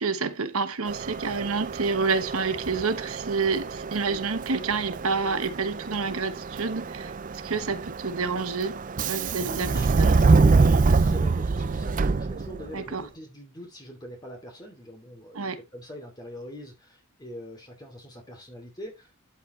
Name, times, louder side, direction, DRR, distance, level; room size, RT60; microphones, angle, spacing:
voice 1, 0.0-7.1 7.4-8.8 9.1-9.7 10.0-10.2 12.7-13.0 15.3-15.6, right 4 dB, 75° right, 1.1 m, -28 dB
Subway metro underground, 0.9-12.8, right 4 dB, 35° right, 0.4 m, -25 dB
voice 2, 9.4-9.9 10.1-19.1, equal, 20° left, 2.7 m, -43 dB
12.0 x 5.7 x 3.2 m
head